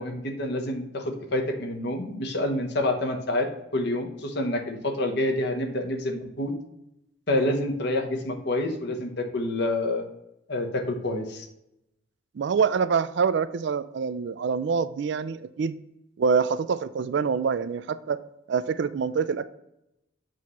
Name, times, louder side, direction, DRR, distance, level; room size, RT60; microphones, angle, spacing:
voice 1, 0.0-6.5 7.3-10.0 10.5-11.5, left 1 dB, 55° left, 4 dB, 1.0 m, -28 dB
voice 2, 12.4-15.7 16.2-18.2 18.5-19.5, right 6 dB, 55° right, 14 dB, 0.3 m, -25 dB
7.6 x 3.1 x 5.6 m, 0.85 s
head